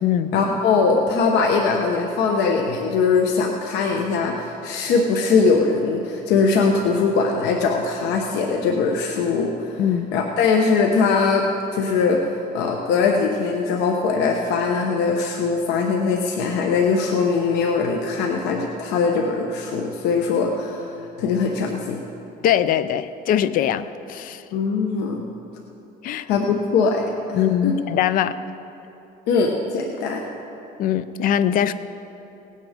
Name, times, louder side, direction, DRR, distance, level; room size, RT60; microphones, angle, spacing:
voice 1, 0.3-9.7 10.1-11.4 11.7-22.0 24.5-25.3 26.3-27.7 29.3-30.2, left 4 dB, 85° left, 2 dB, 1.1 m, -21 dB
voice 2, 22.4-24.4 26.0-26.3 27.3-28.3 30.8-31.7, left 10 dB, 55° left, 13 dB, 0.5 m, -21 dB
18.0 x 9.3 x 5.1 m, 2.8 s
cardioid pair, 145°, 17 cm